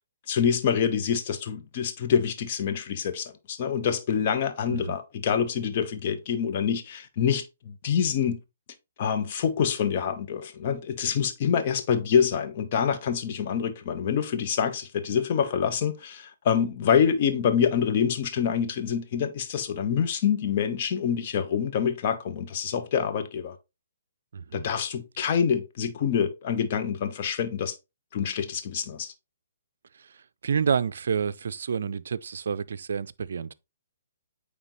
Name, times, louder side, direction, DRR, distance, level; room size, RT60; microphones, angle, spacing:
voice 1, 0.3-8.4 9.0-23.6 24.5-27.8 28.1-29.1, left 7 dB, 45° left, 1.0 m, -26 dB
voice 2, 24.3-24.7 30.0-33.5, right 6 dB, 65° right, 0.4 m, -29 dB
8.9 x 3.5 x 3.1 m
hypercardioid pair, 135°, 0 cm